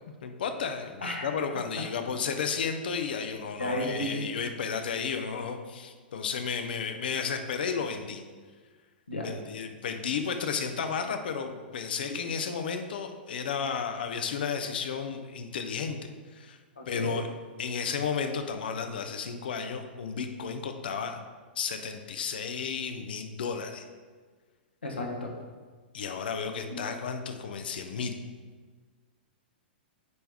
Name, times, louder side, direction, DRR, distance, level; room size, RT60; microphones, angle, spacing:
voice 1, 0.2-8.2 9.2-16.0 16.3-16.6 16.9-17.3 17.6-21.2 21.6-23.8 25.9-28.2, left 6 dB, 60° left, 7 dB, 0.7 m, -33 dB
voice 2, 3.6-4.3 9.1-9.3 12.1-12.2 16.8-17.1 24.8-25.3 26.7-26.8, left 1 dB, 80° left, 0 dB, 1.4 m, -33 dB
9.5 x 3.4 x 4.8 m, 1.5 s
figure-of-eight pair, 105°, 6 cm